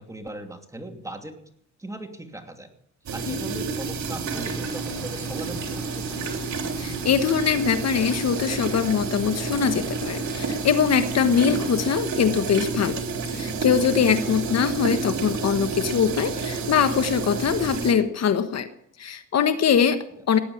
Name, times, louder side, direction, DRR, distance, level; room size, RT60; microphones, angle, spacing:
voice 1, 0.0-1.4 1.8-2.7 3.1-6.2 14.2-14.6, right 1 dB, 10° right, 4 dB, 2.7 m, -38 dB
sound 1, 3.1-17.9, right 4 dB, 65° right, 3.1 m, -30 dB
sound 2, 4.2-11.9, left 1 dB, 10° left, 5.0 m, -46 dB
voice 2, 6.8-13.0 13.3-18.7 19.0-20.4, left 7 dB, 60° left, 10 dB, 1.3 m, -22 dB
18.0 x 10.0 x 7.1 m, 0.72 s
cardioid pair, 90°, 30 cm